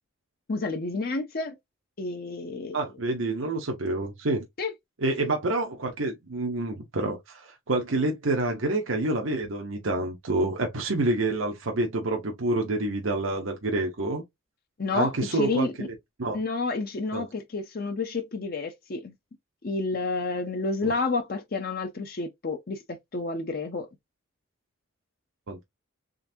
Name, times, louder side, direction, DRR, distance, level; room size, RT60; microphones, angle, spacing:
voice 1, 0.5-1.5 2.0-2.8 4.6-4.7 14.8-15.9 16.3-19.1 19.6-23.9, left 3 dB, 50° left, 0.6 m, -30 dB
voice 2, 2.7-4.5 5.0-14.2 14.9-15.7 16.2-16.4 17.1-17.3 20.8-20.9 25.5-25.6, right 2 dB, 80° right, 0.9 m, -28 dB
3.8 x 3.5 x 2.7 m
head